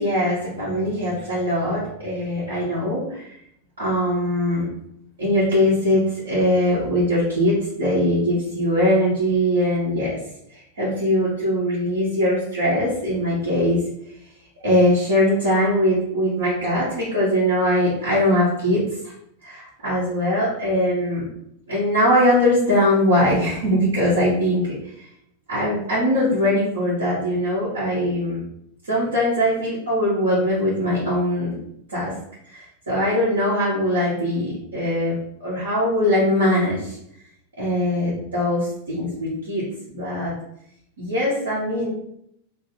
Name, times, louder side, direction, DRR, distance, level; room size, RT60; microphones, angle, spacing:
voice 1, 0.0-3.3 3.8-4.7 5.2-10.2 10.5-13.9 14.6-19.1 19.4-21.3 21.7-24.7 25.5-28.4 28.9-31.5 31.9-32.2 32.5-37.0 37.6-40.3 41.0-41.9, left 1 dB, 70° right, -10 dB, 1.3 m, -21 dB
3.0 x 2.7 x 4.1 m, 0.73 s
figure-of-eight pair, 90°, 0 cm